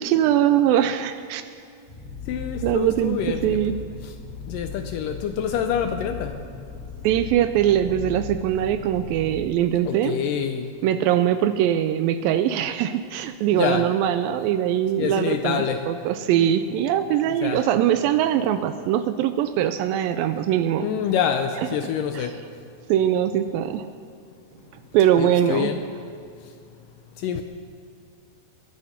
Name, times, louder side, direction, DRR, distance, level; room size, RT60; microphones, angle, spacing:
voice 1, 0.0-1.4 2.6-3.8 7.0-10.2 10.8-20.9 22.1-22.3 22.9-23.9 24.9-25.7, right 11 dB, 85° right, 10 dB, 2.1 m, -22 dB
sound 1, 1.9-9.4, left 5 dB, 25° left, 4.6 m, -37 dB
voice 2, 2.3-3.7 4.0-4.1 4.5-6.4 9.9-10.7 13.5-13.9 15.0-15.9 17.4-17.7 20.8-22.4 25.2-25.8 26.4-26.5 27.2-27.4, left 8 dB, 80° left, 7 dB, 1.9 m, -26 dB
22.5 x 9.2 x 5.8 m, 2.3 s
omnidirectional pair, 4.5 m